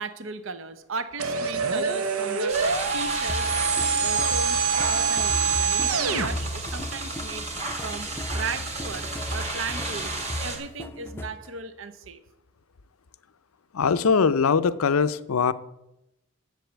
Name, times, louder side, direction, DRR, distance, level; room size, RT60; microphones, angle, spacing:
voice 1, 0.0-2.5 2.8-3.5 3.8-7.5 7.8-10.1 10.4-12.2, right 4 dB, 65° right, 12 dB, 0.7 m, -36 dB
sound 1, 1.2-6.3, right 5 dB, 90° right, 1.0 m, -25 dB
sound 2, 2.5-10.6, right 2 dB, 30° right, 1.9 m, -33 dB
sound 3, 3.3-11.5, equal, 10° left, 0.5 m, -36 dB
voice 2, 13.7-15.5, left 5 dB, 85° left, 14 dB, 0.5 m, -21 dB
8.0 x 6.9 x 8.0 m, 0.90 s
head